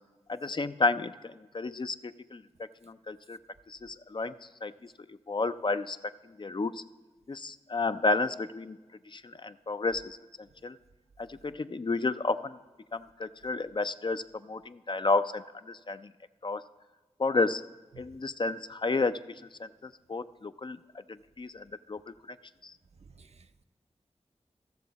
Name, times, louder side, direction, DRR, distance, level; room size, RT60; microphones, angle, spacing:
voice 1, 0.3-2.4 2.8-3.4 3.7-6.0 6.3-6.8 7.3-8.8 9.1-10.8 11.2-12.6 12.9-16.1 16.4-16.6 17.2-17.6 18.0-19.2 19.6-20.8 21.1-22.4 22.6-22.7, left 3 dB, 40° left, 12 dB, 0.4 m, -32 dB
voice 2, 23.0-23.6, right 5 dB, 60° right, 9 dB, 0.5 m, -55 dB
15.0 x 6.8 x 4.0 m, 1.3 s
cardioid pair, 45°, 12 cm